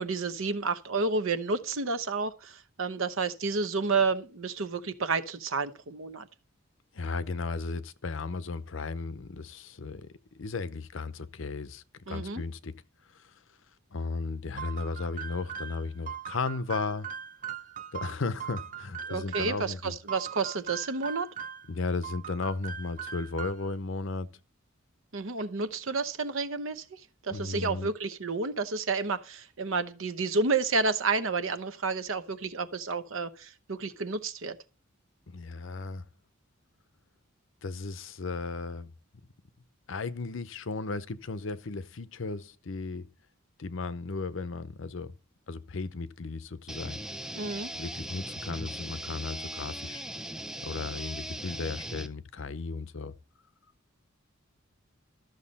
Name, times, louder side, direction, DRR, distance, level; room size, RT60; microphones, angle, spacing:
voice 1, 0.0-6.3 12.1-12.4 19.1-21.3 25.1-34.6 47.3-47.7, right 4 dB, 70° right, 0.9 m, -30 dB
voice 2, 6.9-10.1 10.3-12.8 13.1-13.4 13.9-17.1 17.9-19.9 21.7-24.3 27.3-27.9 35.3-36.1 37.6-38.9 39.9-43.1 43.6-45.1 45.5-47.0 47.7-50.0 50.6-53.1, left 3 dB, 65° left, 0.7 m, -35 dB
sound 1, 14.6-19.6 20.1-21.7 22.0-23.8, right 8 dB, 40° right, 0.7 m, -40 dB
sound 2, 46.7-52.1, right 1 dB, 5° right, 0.5 m, -39 dB
13.0 x 6.5 x 4.1 m
head